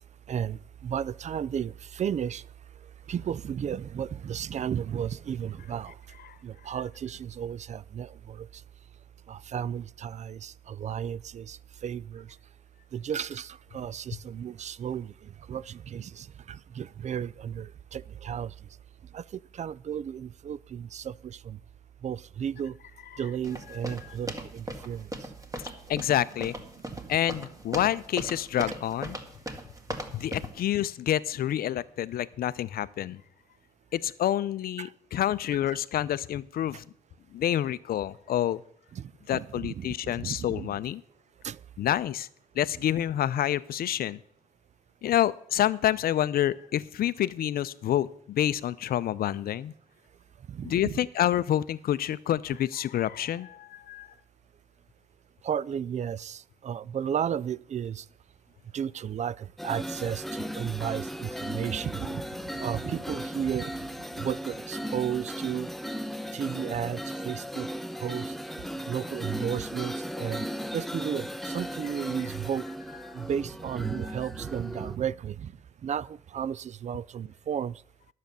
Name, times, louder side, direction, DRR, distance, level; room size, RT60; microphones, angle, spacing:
voice 1, 0.3-2.4 3.1-5.9 6.4-8.5 9.3-12.3 12.9-15.1 15.5-18.5 19.1-19.2 19.5-21.6 22.0-22.7 23.2-25.1 26.9-27.0 28.6-28.7 34.8-34.9 38.9-40.7 41.4-41.6 50.5-51.0 55.4-58.0 58.7-62.2 62.5-63.7 64.1-65.7 66.3-67.7 68.0-68.3 68.9-70.4 70.7-72.6 73.1-75.5 75.8-77.7, right 8 dB, 45° right, 0.4 m, -33 dB
sound 1, 23.4-30.6, right 1 dB, 20° right, 2.1 m, -38 dB
voice 2, 25.9-26.5 27.1-29.2 30.1-33.2 33.9-36.8 37.3-38.6 39.3-41.0 41.8-42.3 42.6-44.2 45.0-49.7 50.6-54.1, left 11 dB, 65° left, 0.6 m, -28 dB
sound 2, 59.6-75.0, equal, ahead, 0.7 m, -36 dB
sound 3, 68.6-68.9 69.6-70.0 74.0-74.1 74.3-74.6, right 7 dB, 80° right, 1.1 m, -51 dB
10.5 x 7.5 x 6.8 m
supercardioid pair, 55°, 16 cm